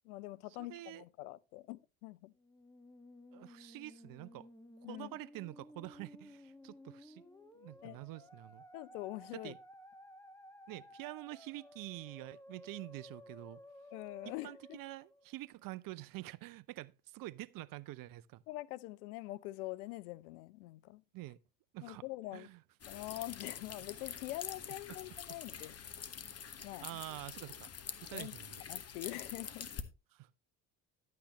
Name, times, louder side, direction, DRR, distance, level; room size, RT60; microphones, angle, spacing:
voice 1, 0.0-2.3 4.8-5.1 7.8-8.0 8.7-9.5 13.9-14.8 18.5-21.0 21.8-22.5 22.9-25.8 26.6-26.9 28.1-28.3 28.7-29.7, left 18 dB, 75° left, 0.6 m, -44 dB
voice 2, 0.7-1.0 3.3-4.5 4.8-7.2 7.6-8.6 9.3-9.6 10.7-13.6 14.2-18.4 21.1-21.4 21.7-22.0 22.3-22.6 26.8-27.7 28.0-28.6 30.1-30.4, right 17 dB, 50° right, 0.6 m, -47 dB
Musical instrument, 2.3-15.7, left 1 dB, 5° left, 1.4 m, -56 dB
sound 1, 22.8-29.8, left 7 dB, 35° left, 1.2 m, -46 dB
11.5 x 8.7 x 3.0 m
hypercardioid pair, 60°, 44 cm